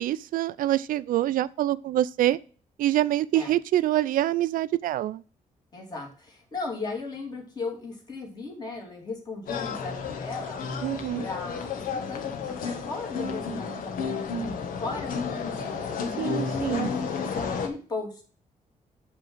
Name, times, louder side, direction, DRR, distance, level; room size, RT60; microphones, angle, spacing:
voice 1, 0.0-2.4 2.8-5.2 10.8-11.2 16.2-16.9, right 13 dB, 80° right, 0.4 m, -25 dB
voice 2, 5.7-10.6 11.2-18.2, left 3 dB, 30° left, 2.6 m, -36 dB
sound 1, 9.5-17.7, left 5 dB, 80° left, 1.4 m, -32 dB
8.3 x 3.7 x 6.0 m
wide cardioid pair, 175°, 14 cm